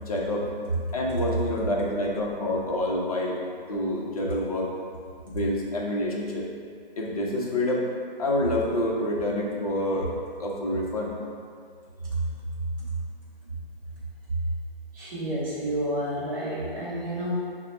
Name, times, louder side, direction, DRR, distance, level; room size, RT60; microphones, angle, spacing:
voice 1, 0.1-0.5 0.9-3.4 3.7-4.7 5.2-6.5 7.0-7.9 8.2-10.1 10.4-11.1, left 1 dB, 40° left, -2 dB, 0.7 m, -27 dB
voice 2, 14.9-17.5, equal, 20° right, -9 dB, 0.9 m, -30 dB
6.4 x 2.2 x 3.1 m, 2.2 s
figure-of-eight pair, 145°, 29 cm